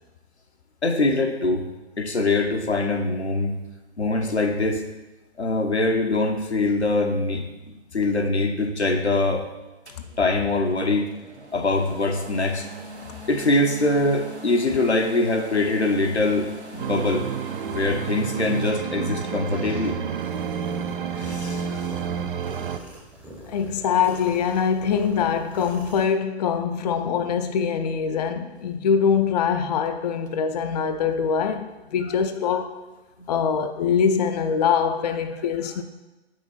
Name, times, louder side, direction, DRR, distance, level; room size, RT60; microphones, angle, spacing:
voice 1, 0.8-1.7 2.0-3.6 4.0-4.8 5.4-9.5 10.2-11.1 11.5-12.7 13.3-17.3 17.7-20.0 21.1-21.9 33.2-33.3, left 2 dB, 85° left, 3 dB, 1.1 m, -23 dB
sound 1, 9.9-18.7, right 1 dB, 90° right, 1.5 m, -41 dB
sound 2, 16.8-22.8, right 7 dB, 55° right, 0.6 m, -30 dB
sound 3, 18.6-26.0, right 1 dB, 5° right, 0.7 m, -44 dB
voice 2, 23.5-31.7 31.9-32.8 33.3-35.8, left 7 dB, 40° left, 8 dB, 0.5 m, -23 dB
8.0 x 6.1 x 4.2 m, 1.1 s
figure-of-eight pair, 120°, 32 cm